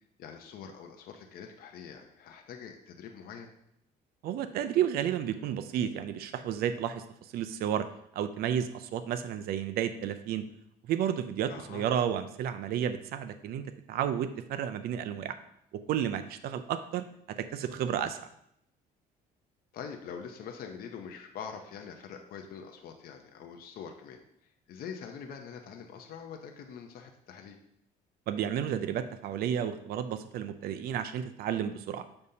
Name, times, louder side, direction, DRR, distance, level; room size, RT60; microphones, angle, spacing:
voice 1, 0.2-3.5 11.5-11.9 19.7-24.2 24.7-27.6, left 7 dB, 60° left, 4 dB, 0.7 m, -44 dB
voice 2, 4.2-7.0 7.3-7.9 8.1-10.4 10.9-15.4 15.9-17.0 17.4-18.2 28.3-32.0, right 9 dB, 65° right, 10 dB, 0.4 m, -32 dB
6.7 x 5.3 x 2.8 m, 0.77 s
cardioid pair, 110°, 17 cm